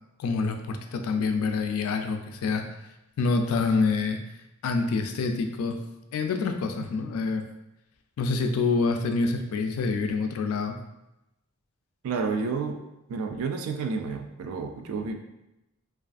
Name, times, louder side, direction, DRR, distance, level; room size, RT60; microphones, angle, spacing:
voice 1, 0.2-2.6 3.2-4.2 4.6-5.8 6.1-7.4 8.2-10.8, left 4 dB, 75° left, 5 dB, 0.3 m, -26 dB
voice 2, 12.0-12.8 13.1-15.2, right 4 dB, 80° right, 8 dB, 0.3 m, -30 dB
2.4 x 2.3 x 2.4 m, 0.91 s
head